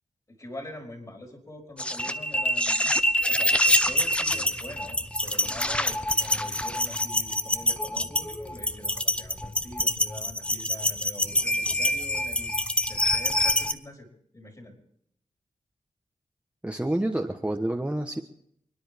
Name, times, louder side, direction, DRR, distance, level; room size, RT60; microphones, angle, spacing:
voice 1, 0.4-12.5 12.9-14.1 14.3-14.8, left 1 dB, 25° left, 2 dB, 4.9 m, -44 dB
sound 1, 1.8-13.7, left 1 dB, 10° left, 0.8 m, -26 dB
voice 2, 16.6-18.2, right 1 dB, 10° right, 2 dB, 1.2 m, -28 dB
29.5 x 10.5 x 3.6 m, 0.69 s
wide cardioid pair, 80°, 13 cm